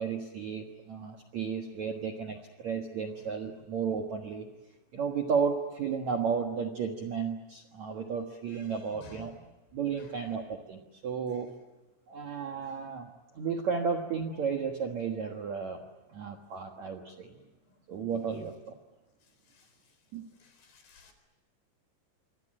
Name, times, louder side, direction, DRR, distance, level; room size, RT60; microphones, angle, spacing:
voice 1, 0.0-4.5 4.9-9.3 9.7-11.5 12.1-15.8 16.1-17.3 17.9-18.8 20.1-20.2, right 6 dB, 60° right, 3 dB, 2.0 m, -33 dB
voice 2, 8.9-9.2 12.7-12.9 17.3-17.5 19.5-19.7 20.4-21.1, left 3 dB, 60° left, 8 dB, 6.0 m, -54 dB
26.5 x 24.5 x 7.7 m, 1.1 s
omnidirectional pair, 5.2 m